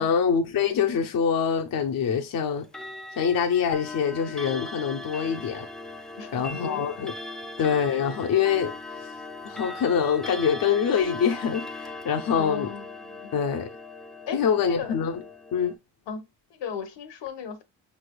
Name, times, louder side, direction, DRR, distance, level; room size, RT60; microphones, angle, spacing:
voice 1, 0.0-2.7 3.2-5.7 6.3-7.1 7.6-9.1 9.4-12.7 13.3-13.7 14.3-15.2 15.5-15.8, left 7 dB, 50° left, 0.7 m, -25 dB
Clock, 2.6-15.8, left 2 dB, ahead, 0.4 m, -39 dB
voice 2, 6.2-6.8 12.3-13.3 14.3-14.4 14.7-14.9 16.1-16.2 16.5-17.6, left 6 dB, 70° left, 1.0 m, -36 dB
5.3 x 3.3 x 2.2 m
cardioid pair, 85°, 44 cm